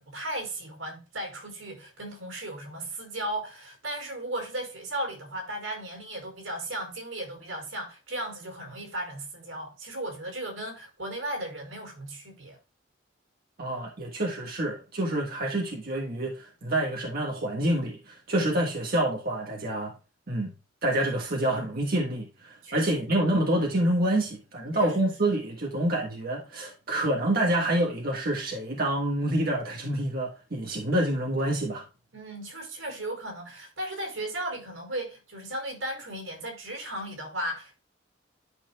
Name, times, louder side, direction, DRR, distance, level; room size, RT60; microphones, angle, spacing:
voice 1, 0.0-12.6 22.6-23.2 24.7-25.0 32.1-37.8, right 1 dB, 85° right, 4.9 m, -36 dB
voice 2, 13.6-19.9 20.3-20.5 20.8-31.8, right 1 dB, 50° right, 1.5 m, -27 dB
11.5 x 5.8 x 2.3 m
head